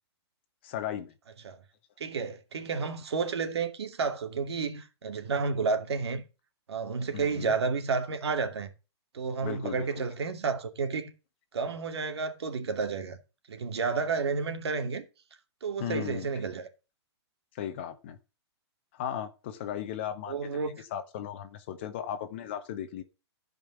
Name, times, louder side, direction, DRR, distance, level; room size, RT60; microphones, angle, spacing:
voice 1, 0.6-1.1 7.1-7.5 9.4-10.0 15.8-16.3 17.5-18.2 18.9-23.0, left 10 dB, 25° left, 0.8 m, -36 dB
voice 2, 2.0-6.2 6.7-8.7 9.1-11.1 11.5-13.2 13.5-15.0 15.6-16.7 20.3-20.8, right 5 dB, 70° right, 2.5 m, -31 dB
14.5 x 5.4 x 6.0 m
hypercardioid pair, 180°, 14 cm